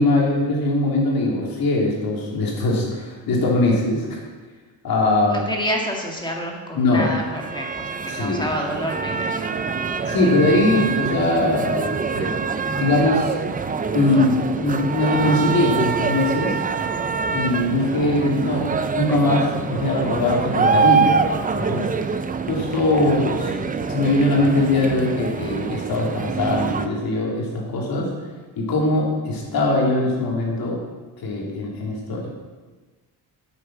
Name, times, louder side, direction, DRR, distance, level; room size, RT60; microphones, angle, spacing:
voice 1, 0.0-4.2 4.8-5.4 6.7-7.1 8.1-8.4 10.1-12.4 12.7-13.3 13.9-16.5 17.3-18.6 18.9-21.2 21.5-21.9 22.5-28.1 28.6-30.8 31.2-32.3, left 2 dB, 65° left, -2 dB, 3.3 m, -21 dB
voice 2, 5.3-9.6, equal, 10° left, 0 dB, 1.8 m, -28 dB
sound 1, 7.1-26.9, right 5 dB, 20° right, 0.5 m, -25 dB
9.8 x 8.4 x 6.0 m, 1.3 s
cardioid pair, 135°, 39 cm